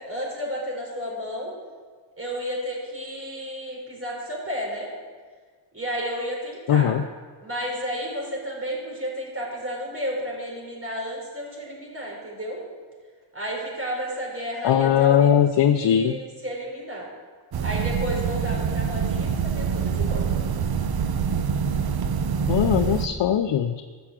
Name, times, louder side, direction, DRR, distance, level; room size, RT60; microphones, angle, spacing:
voice 1, 0.0-1.5 2.2-4.9 5.7-6.9 7.4-12.6 13.3-15.3 15.6-17.1 17.6-20.3, equal, 30° right, -3 dB, 4.7 m, -32 dB
voice 2, 6.7-7.0 14.6-16.1 22.5-23.8, left 9 dB, 80° left, 7 dB, 0.6 m, -20 dB
sound 1, 17.5-23.1, right 6 dB, 60° right, 0.8 m, -25 dB
13.5 x 7.1 x 7.5 m, 1.5 s
wide cardioid pair, 105°, 42 cm